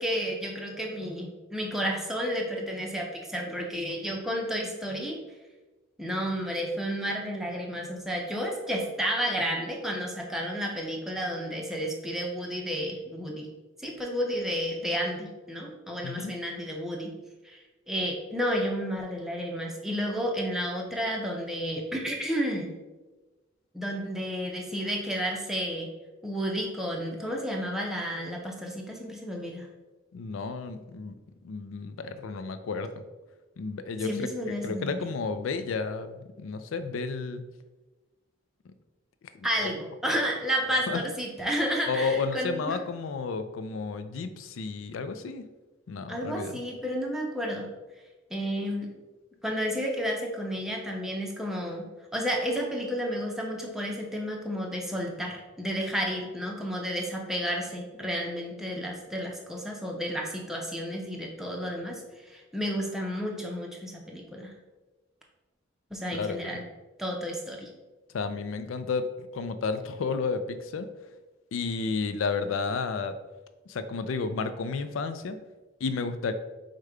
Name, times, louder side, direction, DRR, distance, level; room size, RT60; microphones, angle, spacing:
voice 1, 0.0-5.2 6.0-13.5 13.8-17.1 17.5-17.6 17.9-22.8 23.7-25.9 26.2-29.7 34.0-35.0 39.4-42.8 46.1-47.7 48.3-48.9 49.4-64.6 65.9-66.6 67.0-67.7, equal, ahead, -1 dB, 0.5 m, -31 dB
voice 2, 30.1-31.2 31.4-32.9 33.6-34.3 34.6-37.4 39.3-39.7 40.6-41.0 41.8-45.5 45.9-46.6 66.1-66.6 68.1-70.9 71.5-73.2 73.7-75.4 75.8-76.3, left 4 dB, 85° left, 10 dB, 0.4 m, -32 dB
4.9 x 2.2 x 4.7 m, 1.2 s
head